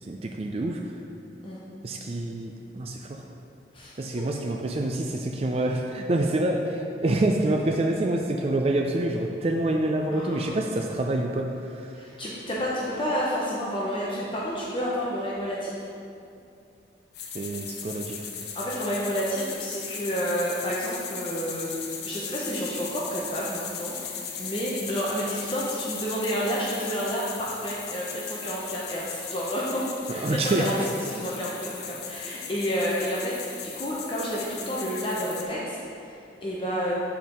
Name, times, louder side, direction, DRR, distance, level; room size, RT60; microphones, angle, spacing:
voice 1, 0.0-0.8 1.8-3.2 4.0-11.5 11.7-11.9 17.3-18.3 30.1-30.7, right 2 dB, 35° right, 1 dB, 0.4 m, -27 dB
voice 2, 3.7-4.3 10.1-10.6 11.9-15.8 18.5-36.9, equal, 30° left, -6 dB, 0.8 m, -30 dB
sound 1, 17.1-35.4, left 6 dB, 60° left, 0.7 m, -37 dB
7.3 x 4.7 x 5.3 m, 2.6 s
head